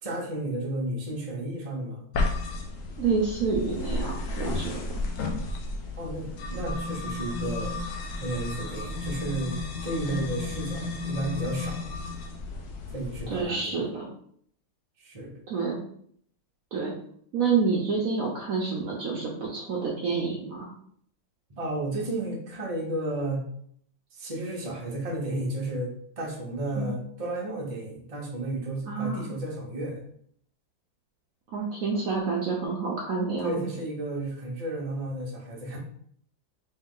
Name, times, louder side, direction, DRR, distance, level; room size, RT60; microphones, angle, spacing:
voice 1, 0.0-2.1 6.0-7.8 8.2-11.9 12.9-13.9 15.0-15.4 21.6-23.4 24.1-30.0 33.4-35.8, right 1 dB, 45° right, -2 dB, 0.4 m, -33 dB
sound 1, 2.1-13.4, left 2 dB, 90° left, 0.7 m, -33 dB
voice 2, 3.0-4.8 13.3-14.1 15.5-15.8 16.7-16.9 17.3-20.7 26.8-26.9 28.8-29.3 31.5-33.6, right 4 dB, 65° right, -2 dB, 0.8 m, -28 dB
3.2 x 3.1 x 3.7 m, 0.65 s
omnidirectional pair, 2.1 m